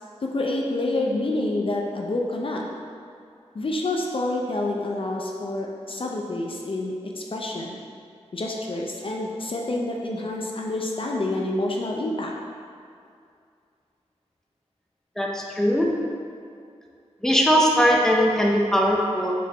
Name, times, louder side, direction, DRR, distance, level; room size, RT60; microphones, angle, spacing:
voice 1, 0.2-2.6 3.5-7.8 8.3-12.3, left 2 dB, 50° left, -1 dB, 0.6 m, -28 dB
voice 2, 15.2-15.9 17.2-19.3, equal, 5° left, -2 dB, 0.7 m, -20 dB
6.1 x 4.5 x 3.5 m, 2.4 s
wide cardioid pair, 95°, 11 cm